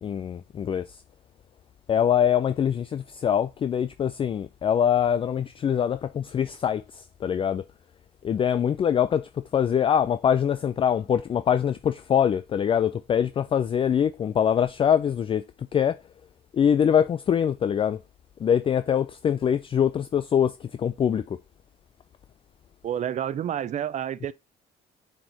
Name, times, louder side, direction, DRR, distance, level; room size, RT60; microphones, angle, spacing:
voice 1, 0.0-1.0 1.9-7.6 8.2-15.4 15.7-16.0 16.5-18.0 18.4-21.4, left 8 dB, 30° left, 0.4 m, -24 dB
voice 2, 22.8-24.3, right 10 dB, 45° right, 0.6 m, -29 dB
7.8 x 4.4 x 2.8 m
cardioid pair, 110°, 17 cm